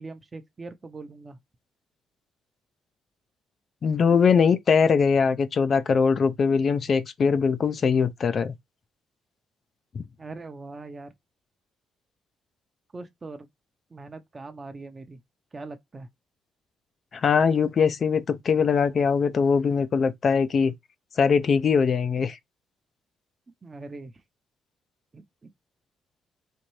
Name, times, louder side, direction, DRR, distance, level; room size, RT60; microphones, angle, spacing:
voice 1, 0.0-1.4 10.2-11.1 12.9-13.5 13.9-15.2 15.5-16.1 23.6-24.2 25.1-25.5, right 3 dB, 30° right, 0.7 m, -41 dB
voice 2, 3.8-8.5 9.9-10.0 17.1-20.7 21.2-22.4, left 6 dB, 50° left, 0.4 m, -21 dB
4.3 x 2.5 x 3.1 m
cardioid pair, 90°, 0 cm